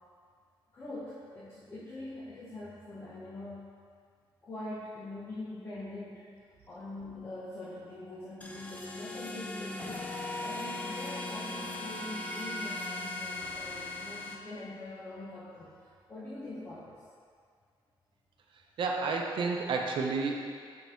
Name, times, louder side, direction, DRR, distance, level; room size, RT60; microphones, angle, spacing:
voice 1, 0.7-3.6 4.4-6.3 6.7-10.0 10.4-16.9, left 2 dB, 30° left, -10 dB, 1.3 m, -43 dB
sound 1, 8.4-14.4, left 2 dB, 15° left, 0.6 m, -38 dB
voice 2, 18.8-20.4, right 4 dB, 60° right, 1 dB, 0.8 m, -30 dB
5.8 x 5.6 x 4.4 m, 2.1 s
cardioid pair, 155°, 9 cm